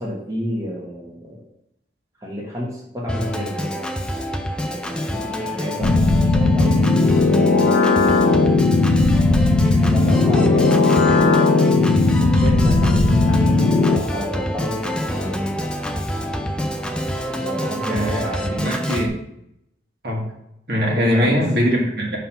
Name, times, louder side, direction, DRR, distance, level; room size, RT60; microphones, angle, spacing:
voice 1, 0.0-1.4 2.2-3.8 4.6-8.1 9.7-11.5 12.2-15.4 17.3-18.7 20.7-21.5, left 1 dB, 20° right, -4 dB, 1.1 m, -30 dB
Organ, 3.1-19.1, equal, 5° left, 0.4 m, -27 dB
sound 1, 5.8-14.0, left 3 dB, 70° left, 0.6 m, -16 dB
voice 2, 17.9-19.1 20.0-20.2 20.7-22.2, equal, 55° right, -1 dB, 1.5 m, -21 dB
5.7 x 3.7 x 5.7 m, 0.81 s
head